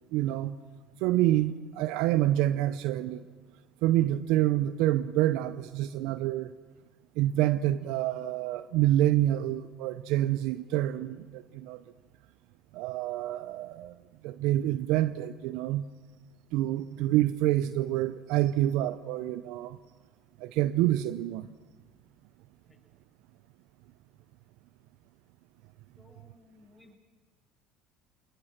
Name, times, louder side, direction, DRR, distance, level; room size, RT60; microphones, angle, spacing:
voice 1, 0.1-0.5 1.0-3.2 3.8-6.5 7.2-11.8 12.7-13.9 14.2-15.9 16.5-19.8 20.4-21.5, right 14 dB, 70° right, 0.6 m, -27 dB
voice 2, 26.0-27.0, left 2 dB, 15° left, 6.8 m, -59 dB
27.5 x 20.0 x 5.9 m
hypercardioid pair, 75°, 0 cm